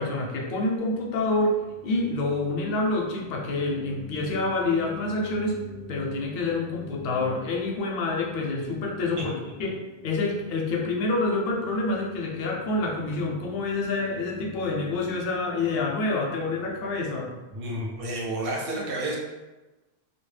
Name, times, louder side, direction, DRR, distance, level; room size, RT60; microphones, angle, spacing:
voice 1, 0.0-1.5 1.8-5.6 5.9-9.8 10.0-17.4, left 2 dB, 65° left, 0 dB, 0.7 m, -27 dB
sound 1, 0.8-18.4, left 4 dB, 15° right, 0.5 m, -46 dB
voice 2, 17.5-19.2, right 1 dB, 65° right, -2 dB, 0.7 m, -30 dB
2.2 x 2.0 x 3.1 m, 1.1 s
omnidirectional pair, 1.1 m